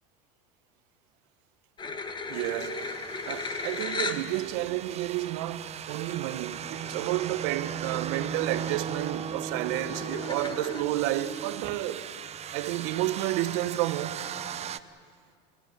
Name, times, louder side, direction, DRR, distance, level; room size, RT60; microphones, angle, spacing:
sound 1, 1.8-4.3 5.0-5.1 6.5-6.6 6.8-7.2 7.6-8.1 8.5-10.8, left 4 dB, 20° left, 1.8 m, -36 dB
sound 2, 2.3-14.8, right 8 dB, 30° right, 0.9 m, -37 dB
voice 1, 2.3-2.8 3.3-12.1 12.5-14.2, right 15 dB, 70° right, 1.2 m, -31 dB
28.5 x 16.5 x 9.5 m
supercardioid pair, 110°, 21 cm